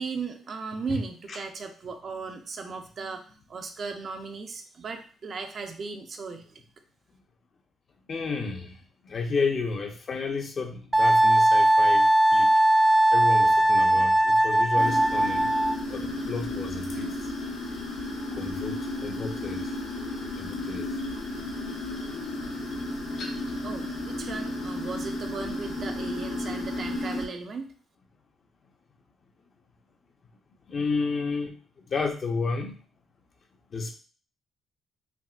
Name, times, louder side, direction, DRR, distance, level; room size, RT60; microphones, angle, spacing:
voice 1, 0.0-6.6 23.6-27.7, right 4 dB, 50° right, 5 dB, 0.6 m, -36 dB
voice 2, 8.1-8.8 9.0-12.6 13.1-15.5 15.9-17.2 18.4-19.7 20.4-20.9 30.7-32.8 33.7-34.0, left 4 dB, 50° left, 3 dB, 0.7 m, -32 dB
Wind instrument woodwind instrument, 10.9-15.8, right 1 dB, 10° right, 0.4 m, -20 dB
sound 1, 14.8-27.3, left 1 dB, 75° left, 1.1 m, -33 dB
5.9 x 2.2 x 2.4 m, 0.40 s
cardioid pair, 90°, 0 cm